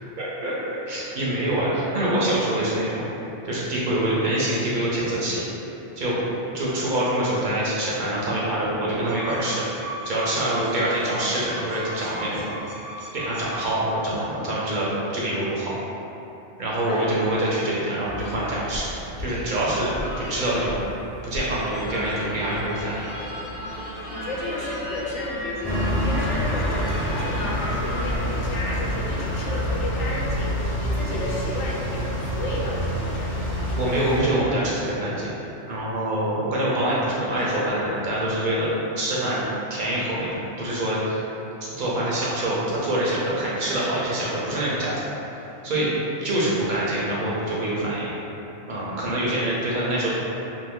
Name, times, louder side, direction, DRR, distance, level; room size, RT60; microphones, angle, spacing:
voice 1, 0.2-3.0 3.4-5.4 6.0-6.2 6.5-9.6 10.0-12.4 13.1-15.7 16.6-18.9 19.2-20.8 21.2-23.0 33.8-35.4 35.7-38.7 39.0-41.2 41.8-45.0 45.6-45.9 46.2-48.1 48.7-50.1, right 1 dB, 55° right, -6 dB, 0.6 m, -25 dB
sound 1, 9.0-14.2, right 1 dB, 80° right, 1.0 m, -37 dB
sound 2, 18.1-30.8, equal, 50° left, 0.9 m, -35 dB
voice 2, 24.1-33.8 45.7-46.0, left 1 dB, 90° left, -4 dB, 0.9 m, -33 dB
sound 3, 25.6-34.2, equal, 20° left, 0.3 m, -27 dB
2.6 x 2.6 x 3.5 m, 2.9 s
omnidirectional pair, 1.2 m